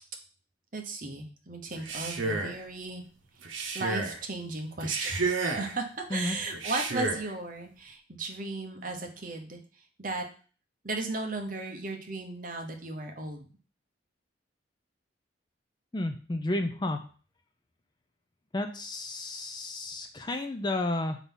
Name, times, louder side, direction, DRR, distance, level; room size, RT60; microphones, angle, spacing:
voice 1, 0.7-3.0 3.7-9.6 10.0-10.3 10.8-13.5, right 2 dB, 45° right, 3 dB, 1.0 m, -36 dB
Male speech man speaking, 1.7-2.6 3.4-4.2 4.8-5.8 6.5-7.3, right 3 dB, 80° right, 0.9 m, -31 dB
voice 2, 15.9-17.0 18.5-21.2, left 2 dB, 20° left, 6 dB, 0.4 m, -32 dB
4.6 x 4.0 x 5.4 m, 0.40 s
head